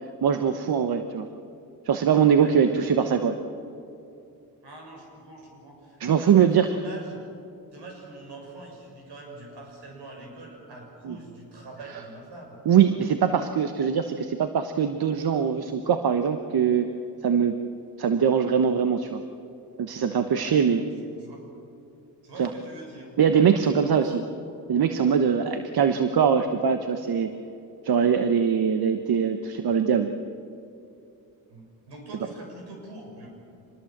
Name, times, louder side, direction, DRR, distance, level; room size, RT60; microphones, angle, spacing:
voice 1, 0.2-1.3 1.8-3.4 6.0-6.7 11.0-11.2 12.6-16.9 17.2-17.6 18.0-19.2 19.8-20.8 22.4-22.5 23.2-24.2 24.7-27.3 27.8-30.2, right 7 dB, 65° right, 8 dB, 1.2 m, -22 dB
voice 2, 4.6-7.2 7.7-12.6 20.4-20.6 20.9-21.4 22.2-23.2 23.5-24.2 31.5-33.3, right 2 dB, 80° right, 0 dB, 6.9 m, -44 dB
25.5 x 20.5 x 7.4 m, 2.6 s
cardioid pair, 70°, 41 cm